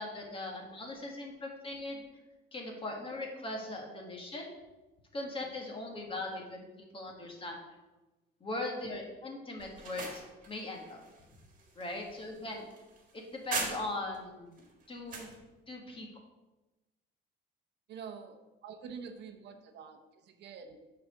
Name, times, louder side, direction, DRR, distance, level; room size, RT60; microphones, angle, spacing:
voice 1, 0.0-2.1 2.5-4.5 5.1-7.6 8.4-11.0 11.8-12.7 13.1-15.3 15.7-16.1, left 2 dB, 25° left, 1 dB, 1.6 m, -40 dB
sound 1, 9.6-14.2 14.6-15.4, right 4 dB, 40° right, 1.8 m, -41 dB
voice 2, 17.9-20.8, right 6 dB, 60° right, 5 dB, 0.8 m, -47 dB
7.6 x 4.3 x 6.2 m, 1.1 s
cardioid pair, 135°, 20 cm